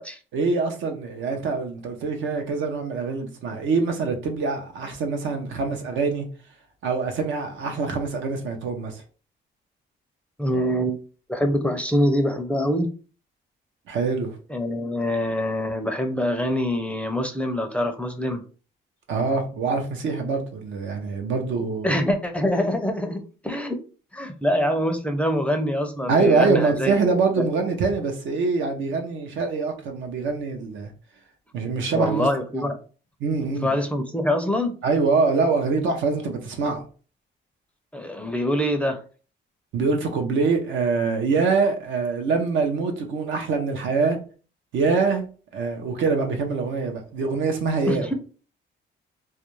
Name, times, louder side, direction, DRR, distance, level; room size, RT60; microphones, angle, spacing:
voice 1, 0.3-6.3 6.8-9.0 13.9-14.4 19.1-22.0 26.1-30.9 31.5-32.3 32.6-32.7 33.2-33.7 34.8-36.8 39.7-44.2 44.7-45.2 45.5-48.1, right 4 dB, 75° right, 0.6 m, -24 dB
voice 2, 10.4-11.0 11.3-12.9 14.5-18.4 21.8-23.8 24.1-26.9 31.9-32.8 33.6-34.7 37.9-39.0 47.9-48.1, equal, 5° left, 0.4 m, -24 dB
2.4 x 2.1 x 3.0 m
cardioid pair, 90°, 20 cm